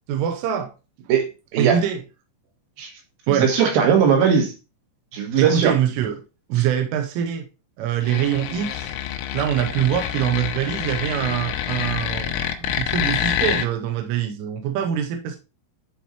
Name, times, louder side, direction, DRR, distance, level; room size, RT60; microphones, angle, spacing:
voice 1, 0.1-0.7 1.0-1.1 1.6-2.0 3.3-3.5 5.4-6.2 6.5-7.5 7.8-8.9 9.3-15.4, right 10 dB, 85° right, 3.3 m, -24 dB
voice 2, 1.1-1.8 2.8-2.9 3.3-4.5 5.1-5.7 6.6-6.7, right 7 dB, 65° right, 2.4 m, -19 dB
sound 1, 8.0-13.7, left 10 dB, 85° left, 3.4 m, -27 dB
10.5 x 4.4 x 3.0 m
omnidirectional pair, 5.8 m